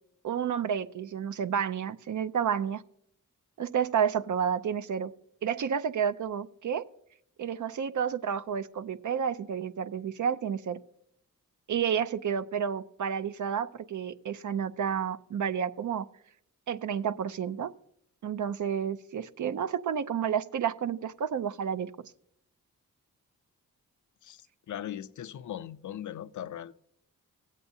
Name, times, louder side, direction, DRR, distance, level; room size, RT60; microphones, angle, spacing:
voice 1, 0.2-2.8 3.6-5.1 5.4-6.8 7.4-10.8 11.7-16.1 16.7-17.7 18.2-21.9, right 8 dB, 60° right, 0.5 m, -30 dB
voice 2, 24.7-26.7, left 11 dB, 60° left, 0.5 m, -39 dB
16.5 x 8.2 x 2.7 m
cardioid pair, 60°, 34 cm